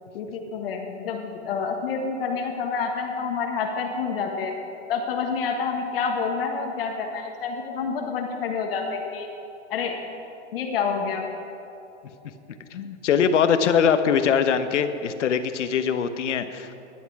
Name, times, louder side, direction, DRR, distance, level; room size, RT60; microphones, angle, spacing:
voice 1, 0.1-4.5 4.9-9.3 9.7-10.0 10.5-11.3, left 5 dB, 50° left, 2 dB, 1.4 m, -28 dB
voice 2, 12.7-16.8, left 7 dB, 75° left, 10 dB, 1.1 m, -22 dB
16.0 x 11.0 x 4.8 m, 2.8 s
hypercardioid pair, 160°, 36 cm